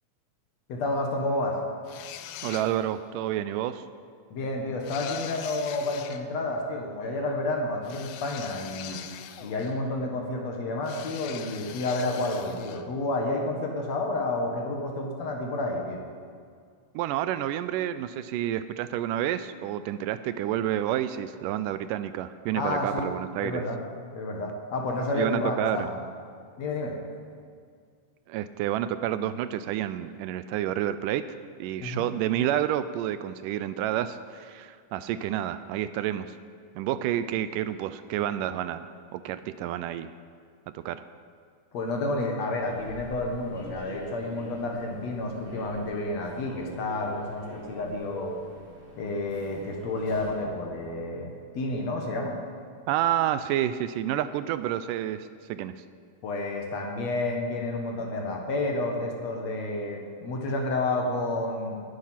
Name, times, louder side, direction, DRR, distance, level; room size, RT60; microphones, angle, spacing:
voice 1, 0.7-1.6 4.3-9.0 9.4-16.0 22.5-23.1 23.4-23.8 24.1-26.0 26.6-27.0 31.8-32.0 41.7-48.3 49.0-52.4 56.2-61.8, left 2 dB, 55° left, 1 dB, 2.5 m, -30 dB
sound 1, 1.9-3.0 4.8-6.2 7.8-9.9 10.8-12.9, left 10 dB, 80° left, 2.3 m, -42 dB
voice 2, 2.4-3.8 16.9-23.6 25.1-25.9 28.3-36.4 36.8-40.1 40.7-41.0 52.9-55.8, right 11 dB, 80° right, 13 dB, 2.1 m, -29 dB
Human voice / Subway metro underground, 42.5-50.5, right 1 dB, 15° right, 3.0 m, -45 dB
20.0 x 9.5 x 5.7 m, 2.1 s
omnidirectional pair, 3.9 m